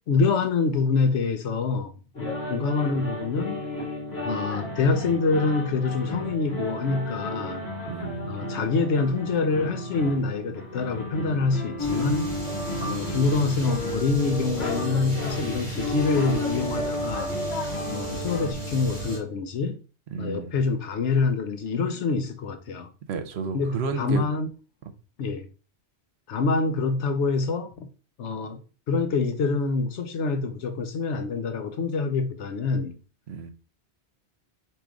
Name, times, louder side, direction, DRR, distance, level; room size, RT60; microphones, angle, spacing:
voice 1, 0.1-1.9 2.2-3.6 4.2-7.6 8.3-12.3 12.8-17.4 17.9-19.8 20.2-22.9 23.5-24.5 25.2-25.5 26.3-27.9 28.2-28.6 28.9-33.0, left 4 dB, 85° left, 1.0 m, -26 dB
sound 1, 2.1-18.5, left 1 dB, 65° left, 1.6 m, -34 dB
voice 2, 7.9-8.4 12.9-13.0 20.1-20.6 23.1-24.2 33.3-33.5, right 5 dB, 70° right, 0.9 m, -32 dB
sound 2, 11.8-19.2, equal, 25° left, 1.8 m, -31 dB
4.7 x 3.0 x 3.7 m
omnidirectional pair, 1.2 m